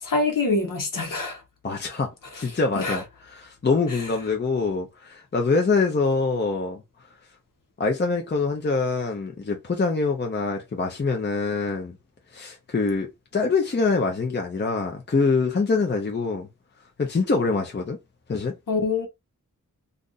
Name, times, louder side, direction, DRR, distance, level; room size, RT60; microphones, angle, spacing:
voice 1, 0.0-1.4 2.3-2.4 2.8-3.0 3.9-4.1 18.7-19.1, left 3 dB, 75° left, 1.1 m, -25 dB
voice 2, 1.6-6.8 7.8-11.9 12.3-13.1 13.3-16.5 17.0-18.0 18.3-18.5, left 4 dB, 35° left, 0.6 m, -24 dB
2.6 x 2.6 x 3.8 m
wide cardioid pair, 90°, 32 cm